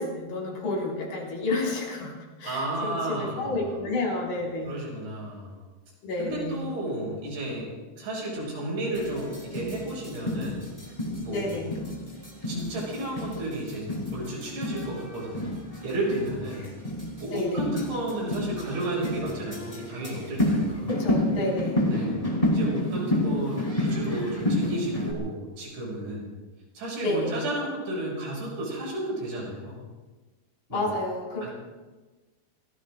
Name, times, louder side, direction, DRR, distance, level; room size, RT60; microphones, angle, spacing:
voice 1, 0.0-2.1 2.4-4.8 6.0-6.7 11.3-11.8 16.5-16.8 17.3-17.7 20.9-21.8 27.0-27.4 30.7-31.5, left 2 dB, 60° left, -3 dB, 7.2 m, -30 dB
voice 2, 2.4-3.8 4.6-5.6 6.2-10.7 11.2-11.6 12.5-15.5 15.8-16.7 17.2-20.9 21.9-22.2 22.5-26.3 26.8-29.8 30.7-30.8 31.4-31.5, right 1 dB, 75° right, -3 dB, 8.6 m, -32 dB
sound 1, 8.9-25.1, left 1 dB, 10° left, 3.3 m, -30 dB
28.0 x 19.5 x 2.6 m, 1.2 s
omnidirectional pair, 5.0 m